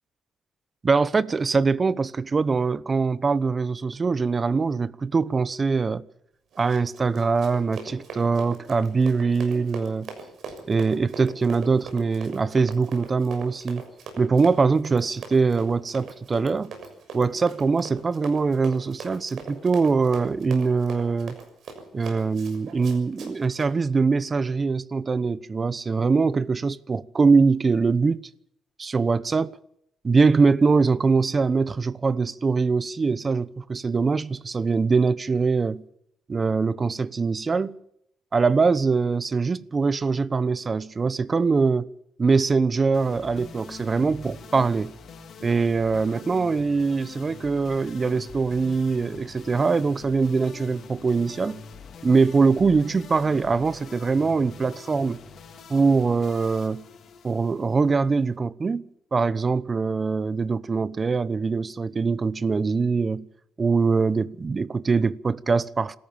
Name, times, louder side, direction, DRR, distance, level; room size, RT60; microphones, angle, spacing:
voice 1, 0.8-6.0 6.6-10.1 10.6-13.9 14.2-16.7 17.1-21.3 21.9-28.2 28.8-29.6 30.0-35.8 36.3-37.8 38.3-41.9 42.2-44.9 45.4-51.6 52.0-55.2 55.7-56.8 57.2-58.8 59.1-63.3 63.6-66.0, right 4 dB, 35° right, 0.9 m, -23 dB
Run, 6.5-23.7, right 5 dB, 65° right, 6.5 m, -41 dB
sound 1, 42.9-58.3, left 5 dB, 60° left, 3.8 m, -44 dB
27.0 x 14.0 x 7.2 m
cardioid pair, 90°, 0 cm